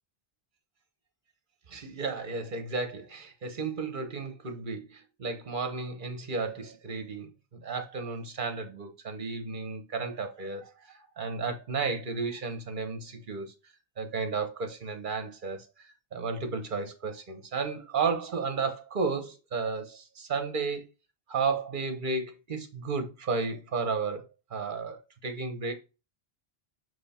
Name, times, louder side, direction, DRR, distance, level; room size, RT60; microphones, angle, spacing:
voice 1, 1.7-13.5 14.0-20.8 21.3-25.7, right 4 dB, 55° right, 1.2 m, -33 dB
7.7 x 3.2 x 4.3 m
omnidirectional pair, 1.0 m